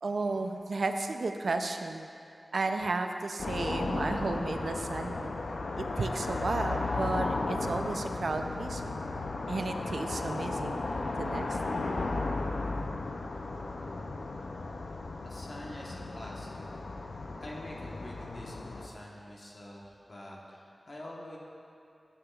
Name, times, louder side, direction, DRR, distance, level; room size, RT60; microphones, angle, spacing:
voice 1, 0.0-2.1 2.5-5.3 5.8-9.0 9.5-10.8 11.2-11.9, right 3 dB, 80° right, 6 dB, 0.4 m, -33 dB
sound 1, 3.4-18.9, left 3 dB, 90° left, 0.4 m, -35 dB
voice 2, 15.2-16.6 17.4-21.4, left 1 dB, 55° left, -3 dB, 1.0 m, -46 dB
9.8 x 7.8 x 2.3 m, 2.5 s
wide cardioid pair, 70°, 0 cm